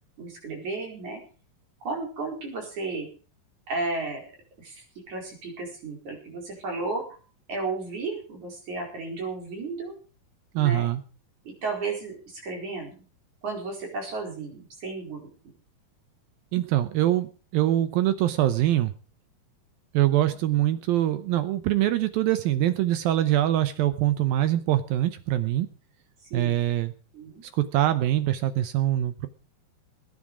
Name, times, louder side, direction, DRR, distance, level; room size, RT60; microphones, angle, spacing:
voice 1, 0.2-1.2 1.8-3.1 3.7-4.3 4.6-7.0 7.5-9.9 10.5-10.9 11.5-13.0 13.4-15.2 26.2-26.6 27.1-27.4, right 3 dB, 45° right, 1 dB, 5.8 m, -33 dB
voice 2, 10.5-11.0 16.5-18.9 19.9-25.7 26.3-26.9 27.5-29.3, right 13 dB, 75° right, 11 dB, 2.3 m, -24 dB
20.0 x 10.0 x 4.9 m, 0.37 s
omnidirectional pair, 4.7 m